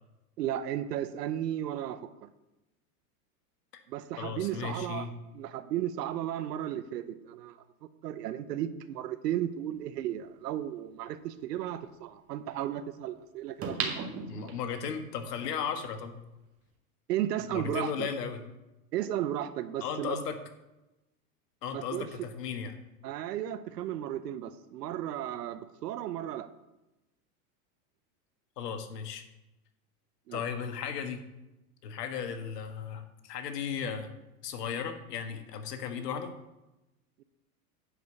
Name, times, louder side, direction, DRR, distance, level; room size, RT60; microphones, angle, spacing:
voice 1, 0.4-2.1 3.9-5.1 5.3-7.6 8.0-14.5 17.1-18.1 18.9-20.2 21.7-22.1 23.0-26.5 30.3-30.4, right 11 dB, 80° right, 13 dB, 1.0 m, -34 dB
voice 2, 4.2-5.1 14.3-16.2 17.5-18.4 19.8-20.4 21.6-22.8 28.6-29.2 30.3-31.2 31.8-34.1 34.4-36.3, left 7 dB, 80° left, 7 dB, 1.6 m, -35 dB
sound 1, 10.0-10.1 13.6-14.9 15.4-15.5, right 5 dB, 30° right, 1.8 m, -35 dB
10.5 x 5.1 x 7.1 m, 0.98 s
hypercardioid pair, 120°, 47 cm